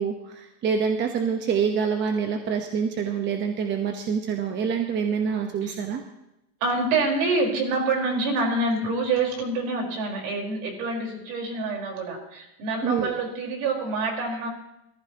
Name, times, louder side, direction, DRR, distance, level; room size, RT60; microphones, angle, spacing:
voice 1, 0.0-6.0 12.8-13.1, right 6 dB, 25° right, 5 dB, 1.1 m, -26 dB
voice 2, 6.6-14.5, right 3 dB, 60° right, 1 dB, 4.7 m, -26 dB
23.0 x 14.5 x 3.0 m, 0.85 s
supercardioid pair, 155°, 46 cm